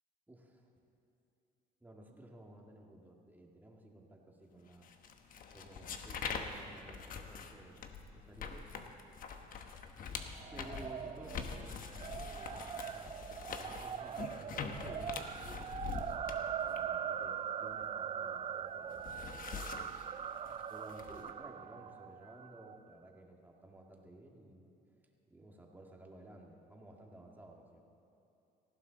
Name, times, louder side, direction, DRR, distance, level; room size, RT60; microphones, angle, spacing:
voice 1, 0.3-0.7 1.8-4.9 5.5-8.7 10.5-11.8 12.2-13.2 13.5-20.0 20.7-24.7 25.3-27.8, right 1 dB, 10° right, 0 dB, 2.0 m, -55 dB
sound 1, 4.8-18.3 18.6-21.3, left 6 dB, 55° left, 1.1 m, -45 dB
sound 2, 10.3-22.8, right 8 dB, 35° right, 0.3 m, -42 dB
18.5 x 15.0 x 4.1 m, 2.8 s
cardioid pair, 110°, 17 cm